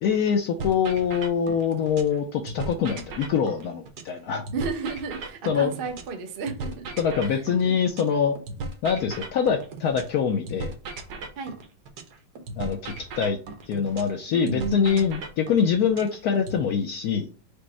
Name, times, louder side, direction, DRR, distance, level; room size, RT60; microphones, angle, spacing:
voice 1, 0.0-4.4 5.5-5.7 7.0-8.3 8.8-10.7 12.6-13.4 13.7-17.3, left 7 dB, 85° left, 3 dB, 0.8 m, -24 dB
sound 1, 0.6-2.2 2.5-6.2 6.5-10.2 10.5-14.2 14.5-16.6, right 3 dB, 65° right, 1.1 m, -37 dB
voice 2, 4.5-6.9 7.3-7.7 11.4-11.6 14.3-15.1, right 5 dB, 80° right, 4 dB, 0.5 m, -33 dB
5.1 x 2.1 x 4.4 m, 0.39 s
omnidirectional pair, 2.2 m